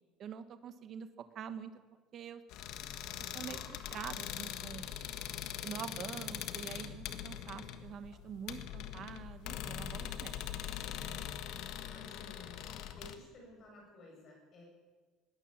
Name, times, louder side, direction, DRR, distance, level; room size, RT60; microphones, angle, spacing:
voice 1, 0.2-1.7 2.1-2.4 3.3-4.9 5.6-10.4, right 8 dB, 35° right, 10 dB, 1.3 m, -45 dB
sound 1, 2.5-13.2, left 10 dB, 55° left, 1.5 m, -42 dB
voice 2, 11.7-12.5 12.9-14.6, left 1 dB, 30° left, 0 dB, 8.0 m, -55 dB
21.0 x 16.5 x 7.4 m, 1.4 s
cardioid pair, 175°, 0 cm